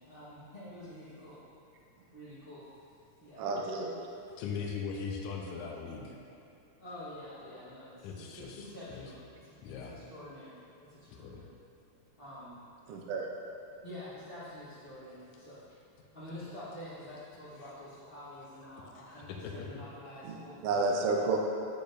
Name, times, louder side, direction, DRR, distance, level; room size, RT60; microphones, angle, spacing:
voice 1, 0.0-1.4 2.1-2.6 3.2-3.4 6.8-9.1 9.4-11.4 12.2-12.6 13.8-15.6 16.1-21.2, left 1 dB, 40° left, -13 dB, 0.8 m, -47 dB
voice 2, 3.4-3.9 12.9-13.3 20.2-20.4 20.6-21.4, right 3 dB, 75° right, 0 dB, 1.4 m, -30 dB
voice 3, 4.4-6.2 8.0-9.1 9.6-9.9 11.1-11.4 19.0-19.7, left 5 dB, 80° left, 0 dB, 2.0 m, -40 dB
8.6 x 8.2 x 2.6 m, 2.6 s
omnidirectional pair, 3.6 m